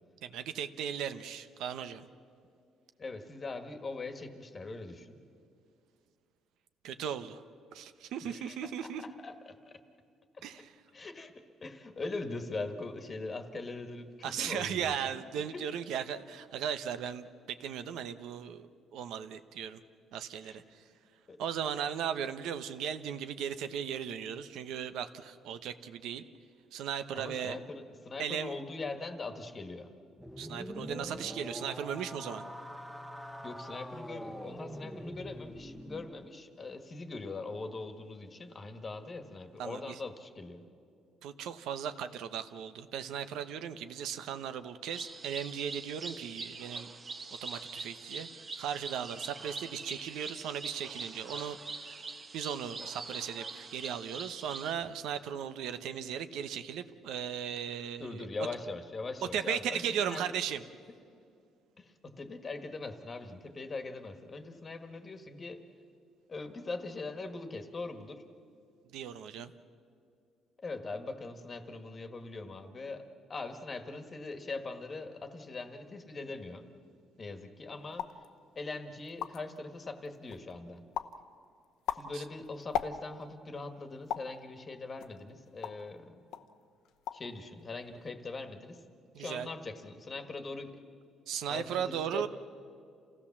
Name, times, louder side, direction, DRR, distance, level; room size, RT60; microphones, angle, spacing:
voice 1, 0.2-2.0 6.8-7.4 7.7-9.0 10.4-10.7 14.2-18.7 18.9-19.8 20.1-20.6 21.4-26.3 26.7-27.6 28.2-28.5 30.4-32.4 39.6-39.9 41.2-46.9 47.4-52.0 52.3-58.3 59.3-60.6 68.9-69.5 82.1-82.2 89.1-89.5 91.3-92.3, right 8 dB, 80° right, 10 dB, 0.9 m, -37 dB
voice 2, 3.0-5.2 8.2-9.8 10.9-15.0 15.5-15.7 20.4-20.6 21.3-21.4 27.1-29.9 33.4-40.6 58.0-60.2 61.8-65.6 66.3-68.2 70.6-76.6 77.2-78.1 78.5-80.8 81.9-86.1 87.1-88.8 89.2-90.7 91.4-92.3, left 3 dB, 25° left, 8 dB, 1.5 m, -41 dB
sound 1, 30.2-36.1, equal, 5° right, 1.0 m, -43 dB
sound 2, 44.9-54.7, right 3 dB, 30° right, 1.0 m, -43 dB
sound 3, 77.9-78.3 78.8-78.9 79.0-79.6 80.1-80.5 80.9-81.2 81.6-83.3 84.1-84.4 85.0-85.9 86.3-86.5 86.8-87.3 87.6-88.1, left 9 dB, 80° left, 0.9 m, -38 dB
28.0 x 16.0 x 7.3 m, 2.4 s
cardioid pair, 135°, 0 cm